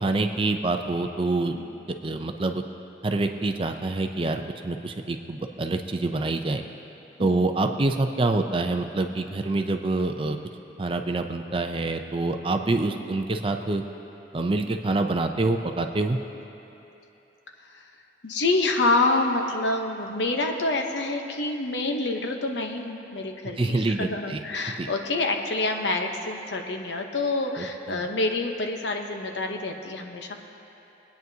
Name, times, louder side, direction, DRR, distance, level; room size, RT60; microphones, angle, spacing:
voice 1, 0.0-1.6 2.0-2.6 3.0-6.6 7.2-10.4 10.8-13.8 14.3-16.2 23.6-24.4 24.8-24.9 27.6-28.0, right 2 dB, 30° right, 5 dB, 0.4 m, -26 dB
voice 2, 18.2-30.4, left 2 dB, 70° left, 3 dB, 0.9 m, -27 dB
22.5 x 9.2 x 2.8 m, 3.0 s
head